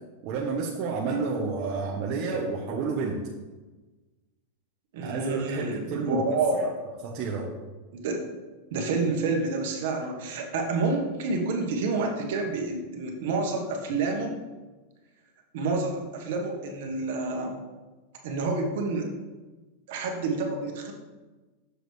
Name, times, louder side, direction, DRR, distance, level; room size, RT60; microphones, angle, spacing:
voice 1, 0.2-3.2 5.0-6.7 7.0-7.5, right 4 dB, 35° right, -1 dB, 0.8 m, -30 dB
voice 2, 4.9-6.7 7.9-8.3 8.7-14.3 15.5-17.6 18.2-19.1 19.9-21.0, right 3 dB, 60° right, 2 dB, 1.3 m, -28 dB
6.8 x 6.3 x 3.2 m, 1.2 s
supercardioid pair, 160°, 0 cm